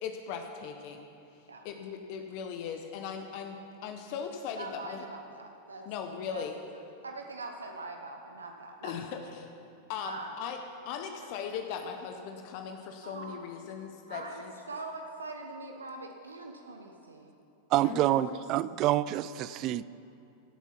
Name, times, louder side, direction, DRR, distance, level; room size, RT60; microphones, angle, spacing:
voice 1, 0.0-1.1 1.6-5.1 5.9-6.6 8.8-9.5 9.9-10.6 10.8-14.5 17.8-18.4, left 7 dB, 55° left, 5 dB, 0.9 m, -39 dB
voice 2, 4.5-5.9 6.3-6.4 7.0-9.3 10.0-10.3 11.2-11.3 13.0-13.4 14.1-17.3, right 3 dB, 85° right, 3 dB, 0.9 m, -43 dB
voice 3, 17.7-19.8, right 14 dB, 45° right, 18 dB, 0.3 m, -27 dB
16.5 x 8.2 x 5.8 m, 2.7 s
figure-of-eight pair, 90°, 0 cm